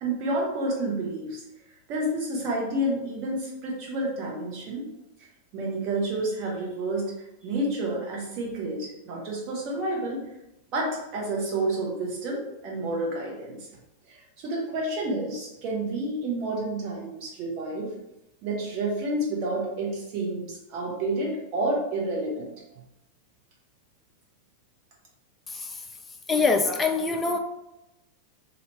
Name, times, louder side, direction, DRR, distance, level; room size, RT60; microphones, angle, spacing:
voice 1, 0.0-1.4 1.9-4.9 5.5-7.1 7.4-10.2 10.7-13.7 14.1-17.9 18.4-22.5, right 2 dB, 40° right, -2 dB, 0.9 m, -29 dB
voice 2, 25.5-25.8 26.3-27.4, left 4 dB, 15° left, 5 dB, 0.3 m, -24 dB
2.7 x 2.1 x 2.8 m, 0.91 s
figure-of-eight pair, 90°, 0 cm